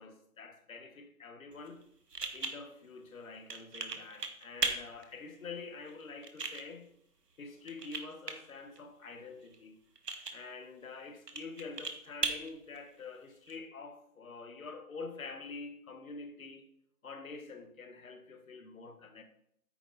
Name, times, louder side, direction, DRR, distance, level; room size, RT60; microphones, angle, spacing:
voice 1, 0.0-1.8 2.3-6.9 7.4-9.8 10.3-16.7 17.0-19.2, left 4 dB, 60° left, 1.5 m, -46 dB
sound 1, 1.5-13.5, right 4 dB, 90° right, 1.7 m, -41 dB
9.3 x 8.2 x 4.0 m
figure-of-eight pair, 155°, 46 cm